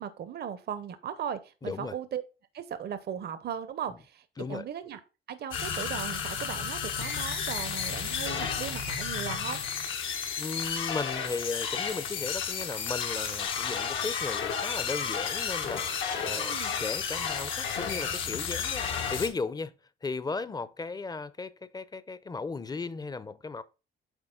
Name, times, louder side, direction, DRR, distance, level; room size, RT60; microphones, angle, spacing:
voice 1, 0.0-2.2 2.5-5.0 5.3-9.6 16.4-16.8, right 8 dB, 55° right, 0.7 m, -37 dB
voice 2, 1.6-1.9 4.4-4.7 10.4-19.7 20.0-23.6, left 4 dB, 20° left, 0.6 m, -36 dB
sound 1, 5.5-19.3, left 7 dB, 80° left, 1.4 m, -32 dB
8.1 x 4.2 x 3.7 m
cardioid pair, 90°, 20 cm